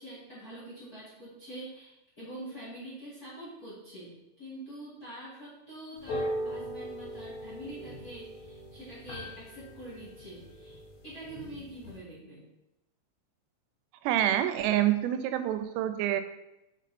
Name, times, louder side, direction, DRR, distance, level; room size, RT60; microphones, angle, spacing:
voice 1, 0.0-12.4, right 1 dB, 35° left, -9 dB, 1.6 m, -45 dB
sound 1, 6.0-12.0, equal, 75° left, 3.3 m, -40 dB
voice 2, 14.0-16.2, right 12 dB, 90° right, 10 dB, 2.8 m, -27 dB
6.3 x 5.8 x 4.2 m, 0.91 s
omnidirectional pair, 4.9 m